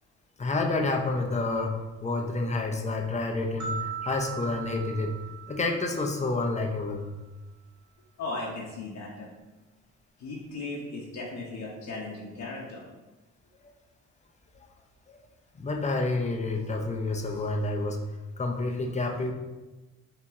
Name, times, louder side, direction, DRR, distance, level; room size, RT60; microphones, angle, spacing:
voice 1, 0.4-5.1 5.5-7.1 15.1-15.2 15.6-18.0 18.4-19.3, left 2 dB, 25° left, 2 dB, 0.6 m, -29 dB
sound 1, 3.6-6.7, right 6 dB, 70° right, 1.3 m, -39 dB
voice 2, 8.2-9.3 10.2-12.8, left 2 dB, 65° left, -4 dB, 0.9 m, -37 dB
4.4 x 3.0 x 3.6 m, 1.1 s
cardioid pair, 90°, 30 cm